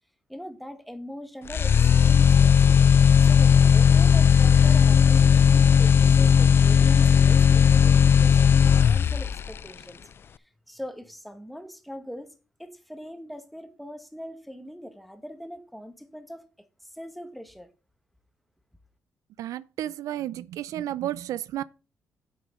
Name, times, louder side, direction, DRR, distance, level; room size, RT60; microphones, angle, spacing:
voice 1, 0.3-2.7 3.2-10.0 10.3-12.3 12.6-17.7, equal, ahead, 1.5 m, -41 dB
sound 1, 1.5-9.5, left 7 dB, 45° left, 0.3 m, -17 dB
voice 2, 19.4-21.6, right 12 dB, 80° right, 0.4 m, -32 dB
8.4 x 6.3 x 5.1 m
cardioid pair, 90°, 6 cm